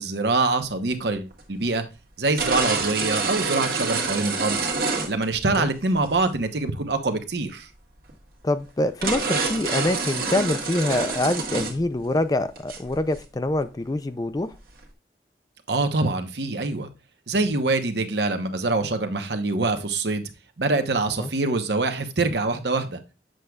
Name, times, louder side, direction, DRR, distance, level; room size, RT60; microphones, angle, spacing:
voice 1, 0.0-1.8 2.2-4.7 5.1-7.7 15.7-16.9 17.3-20.2 20.6-23.0, right 3 dB, 75° right, 7 dB, 1.0 m, -24 dB
sound 1, 1.3-1.4 2.4-5.6 6.1-6.2 8.1-8.2 8.5-8.6 9.0-11.8 12.0-12.2 12.6-13.2, right 4 dB, 55° right, 1.7 m, -27 dB
voice 2, 8.4-14.5 21.2-21.3, left 2 dB, 20° left, 12 dB, 0.4 m, -25 dB
7.6 x 6.4 x 2.3 m, 0.30 s
head